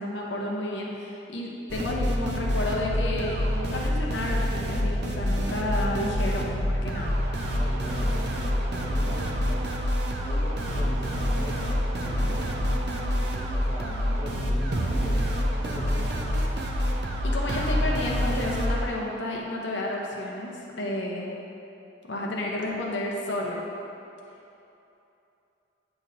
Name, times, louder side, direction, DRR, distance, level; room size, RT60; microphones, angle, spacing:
voice 1, 0.0-7.2 17.2-21.3 22.0-23.6, left 1 dB, 65° left, -2 dB, 0.9 m, -31 dB
sound 1, 1.7-18.9, equal, 55° right, 0.7 m, -27 dB
voice 2, 7.5-11.9 12.5-16.1, equal, 20° left, -5 dB, 0.8 m, -40 dB
Fireworks, 12.0-13.3 14.7-16.3, equal, 35° left, 1.5 m, -44 dB
8.7 x 6.0 x 2.7 m, 2.9 s
head